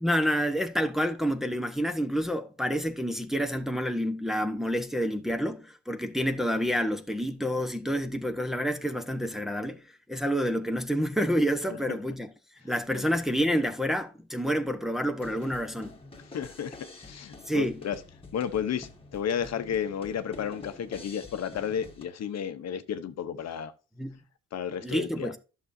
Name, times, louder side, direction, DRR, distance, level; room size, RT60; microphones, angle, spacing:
voice 1, 0.0-9.8 10.1-12.3 12.6-16.0 17.5-17.8 24.0-24.2 24.8-25.4, equal, ahead, 1.1 m, -28 dB
sound 1, 15.2-22.0, left 2 dB, 20° left, 2.0 m, -47 dB
voice 2, 16.3-18.0 18.3-23.7 24.5-25.3, left 8 dB, 60° left, 0.9 m, -32 dB
11.0 x 6.9 x 2.7 m
cardioid pair, 90°, 30 cm